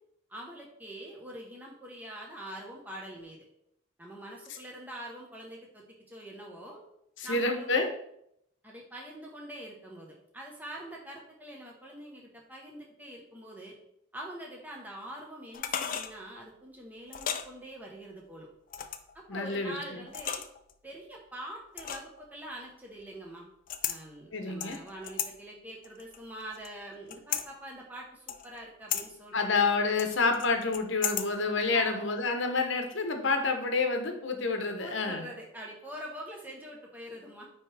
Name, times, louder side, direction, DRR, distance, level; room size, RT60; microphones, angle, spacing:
voice 1, 0.3-3.4 4.0-6.8 7.2-7.8 8.6-13.7 14.1-18.5 19.1-20.4 20.8-23.5 23.9-29.6 31.7-32.0 34.8-37.5, right 1 dB, 10° right, -2 dB, 0.9 m, -44 dB
voice 2, 7.2-7.9 19.3-20.0 24.3-24.8 29.3-35.2, left 3 dB, 65° left, 5 dB, 0.8 m, -28 dB
sound 1, 15.5-16.1 17.1-17.5 18.7-19.1 20.1-20.7 21.8-22.2 23.7-24.0 24.6-25.3 25.8-26.7 27.1-27.5 28.3-28.6 28.9-29.0 30.0-31.3 31.6-31.7, left 9 dB, 40° left, 0.4 m, -34 dB
9.2 x 3.1 x 3.3 m, 0.74 s
head